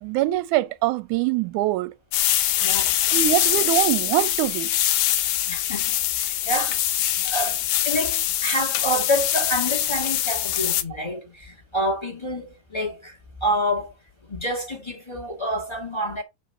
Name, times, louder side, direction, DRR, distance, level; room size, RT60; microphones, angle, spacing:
voice 1, 0.0-1.9 3.1-4.7, right 15 dB, 80° right, 1.8 m, -23 dB
sound 1, 2.1-10.8, left 12 dB, 75° left, 2.2 m, -23 dB
voice 2, 2.6-2.9 5.5-13.9 14.3-16.2, equal, 20° left, 0.7 m, -28 dB
8.4 x 2.9 x 5.7 m
omnidirectional pair, 3.7 m